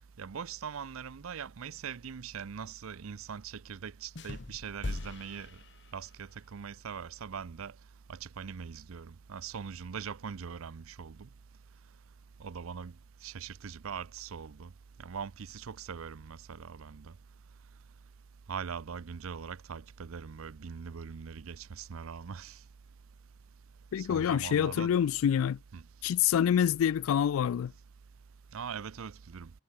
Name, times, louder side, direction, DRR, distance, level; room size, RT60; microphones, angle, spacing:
voice 1, 0.2-5.5 5.9-7.7 8.1-11.3 12.4-12.9 13.2-14.7 15.0-17.1 18.5-22.6 24.0-24.9 25.7-25.8 28.5-29.5, right 6 dB, 80° right, 0.5 m, -41 dB
sound 1, 4.2-6.4, left 2 dB, 55° left, 1.0 m, -41 dB
voice 2, 23.9-25.6 26.0-27.7, left 9 dB, 80° left, 0.3 m, -26 dB
head